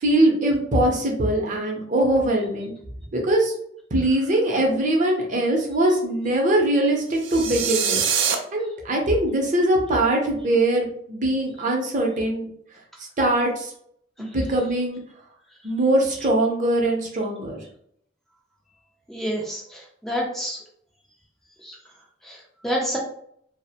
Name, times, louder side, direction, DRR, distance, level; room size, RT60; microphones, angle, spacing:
voice 1, 0.0-2.7 3.1-3.5 3.9-12.5 13.2-13.7 14.2-15.0 15.6-17.6, right 1 dB, 45° right, 0 dB, 0.6 m, -22 dB
sound 1, 7.2-8.4, right 7 dB, 85° right, 0.4 m, -23 dB
voice 2, 19.1-20.6 21.6-21.8 22.2-22.4 22.6-23.0, equal, ahead, -2 dB, 0.4 m, -28 dB
2.4 x 2.0 x 2.8 m, 0.66 s
head